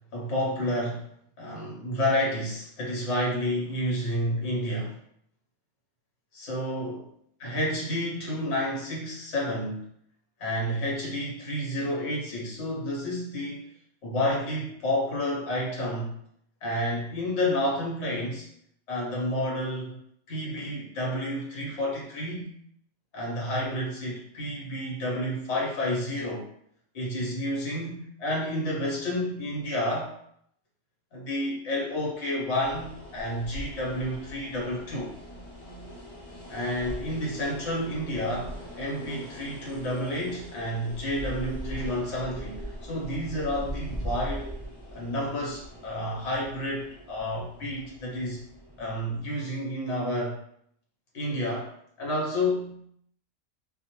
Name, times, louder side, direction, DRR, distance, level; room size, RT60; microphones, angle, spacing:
voice 1, 0.1-1.1 1.4-5.0 6.3-7.1 7.4-9.9 10.4-13.6 14.0-16.1 16.6-18.5 18.9-20.0 20.3-22.5 23.1-26.5 26.9-30.1 31.1-35.1 36.5-44.5 44.9-48.4 48.8-50.4 51.1-51.7 52.0-52.8, left 1 dB, 65° left, -3 dB, 1.1 m, -30 dB
sound 1, 32.6-49.2, equal, 30° left, 0.9 m, -41 dB
2.3 x 2.1 x 2.9 m, 0.69 s
omnidirectional pair, 1.2 m